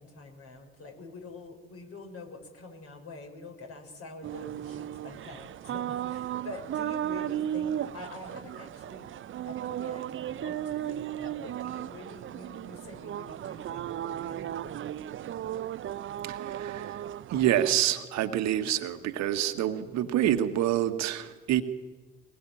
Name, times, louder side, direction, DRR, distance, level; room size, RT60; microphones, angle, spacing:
voice 1, 0.0-9.1 9.4-14.9, left 3 dB, 45° left, 3 dB, 6.2 m, -46 dB
sound 1, 4.2-17.8, right 11 dB, 40° right, 0.7 m, -35 dB
voice 2, 16.2-17.0 17.3-21.6, right 12 dB, 60° right, 9 dB, 1.6 m, -27 dB
23.0 x 20.5 x 8.9 m, 1.3 s
figure-of-eight pair, 50°, 31 cm